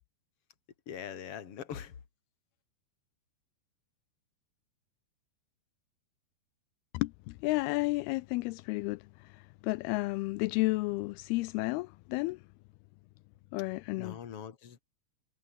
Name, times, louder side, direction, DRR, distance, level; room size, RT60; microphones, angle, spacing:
voice 1, 0.9-1.9 14.0-14.8, left 8 dB, 40° left, 2.6 m, -42 dB
voice 2, 6.9-12.4 13.5-14.2, left 22 dB, 90° left, 2.2 m, -32 dB
omnidirectional pair, 5.1 m